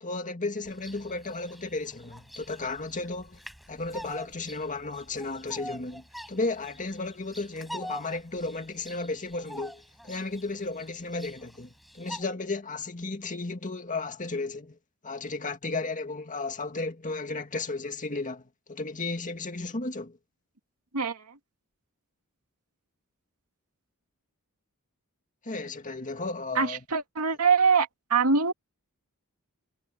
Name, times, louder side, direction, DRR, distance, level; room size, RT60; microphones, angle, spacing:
voice 1, 0.0-3.4 3.7-14.8 15.0-20.2 25.4-26.8, left 3 dB, 35° left, 2.1 m, -34 dB
Bird vocalization bird call bird song, 0.6-12.2, equal, ahead, 6.1 m, -45 dB
voice 2, 20.9-21.4 26.6-28.5, right 5 dB, 80° right, 2.4 m, -24 dB
head